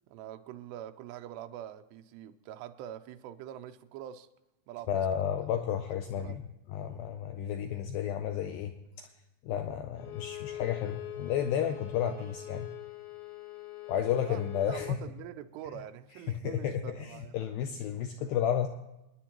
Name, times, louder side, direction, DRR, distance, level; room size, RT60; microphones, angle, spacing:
voice 1, 0.1-4.3 4.7-5.1 6.2-6.4 12.0-12.3 14.1-17.5, right 11 dB, 85° right, 8 dB, 2.8 m, -44 dB
voice 2, 4.9-6.4 6.7-9.1 9.4-12.7 13.9-15.0 16.4-17.1 17.3-18.7, left 9 dB, 90° left, 6 dB, 2.1 m, -32 dB
Bowed string instrument, 10.0-15.0, left 13 dB, 70° left, 3.2 m, -43 dB
29.0 x 9.9 x 2.9 m, 0.99 s
omnidirectional pair, 4.8 m